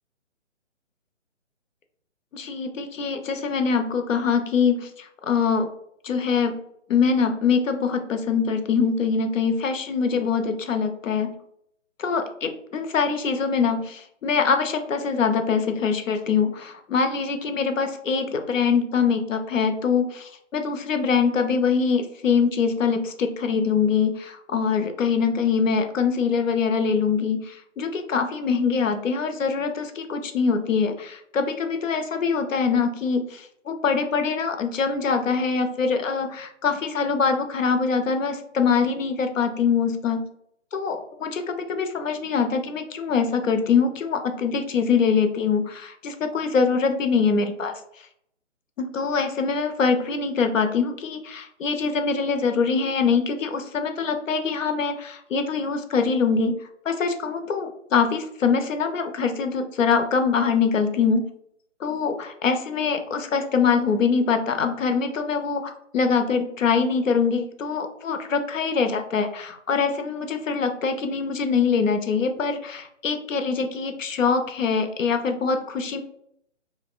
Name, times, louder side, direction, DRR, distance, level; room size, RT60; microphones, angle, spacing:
voice 1, 2.3-5.7 6.0-6.6 6.9-11.3 12.0-40.2 40.7-47.7 48.8-56.5 56.9-61.3 61.8-76.0, left 5 dB, 85° left, 7 dB, 0.5 m, -23 dB
2.7 x 2.0 x 2.3 m, 0.72 s
figure-of-eight pair, 150°, 38 cm